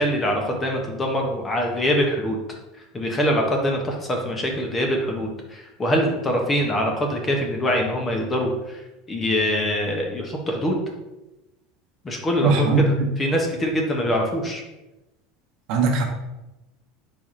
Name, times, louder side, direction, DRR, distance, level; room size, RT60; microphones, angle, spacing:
voice 1, 0.0-2.4 2.9-8.5 9.1-10.8 12.0-12.8 13.2-14.6, equal, 15° left, 1 dB, 0.6 m, -23 dB
voice 2, 12.4-13.1 15.7-16.0, right 3 dB, 55° right, 2 dB, 0.8 m, -19 dB
4.5 x 4.1 x 2.5 m, 0.99 s
supercardioid pair, 160°, 0 cm